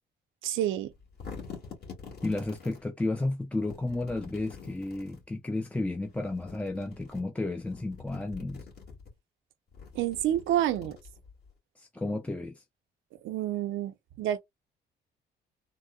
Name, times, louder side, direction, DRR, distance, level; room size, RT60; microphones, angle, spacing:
voice 1, 0.4-0.9 9.9-11.0 13.2-14.4, right 12 dB, 85° right, 0.6 m, -29 dB
sound 1, 0.9-2.8 3.6-5.2 6.2-7.2 7.6-9.1 9.7-11.5, left 5 dB, 55° left, 2.0 m, -46 dB
voice 2, 2.2-8.6 11.8-12.6, left 2 dB, 5° left, 0.4 m, -32 dB
3.7 x 2.1 x 2.3 m
cardioid pair, 90°, 20 cm